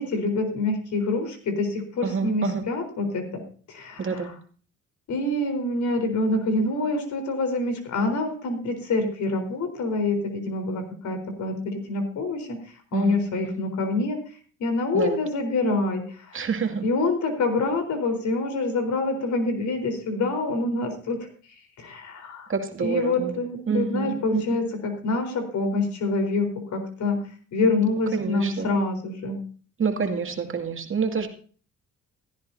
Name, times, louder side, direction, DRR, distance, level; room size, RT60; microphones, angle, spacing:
voice 1, 0.0-3.4 3.7-4.3 5.1-12.6 12.9-14.2 14.6-16.4 16.8-21.3 21.8-22.5 22.8-27.2 27.5-29.4, left 2 dB, 70° left, 5 dB, 4.2 m, -26 dB
voice 2, 2.0-2.6 4.0-4.3 12.9-13.2 13.4-13.5 14.9-15.2 16.3-16.9 22.5-23.4 23.7-24.4 28.1-28.7 29.8-31.3, right 5 dB, 45° right, 3 dB, 2.4 m, -27 dB
16.0 x 14.0 x 2.8 m, 0.42 s
cardioid pair, 90°, 30 cm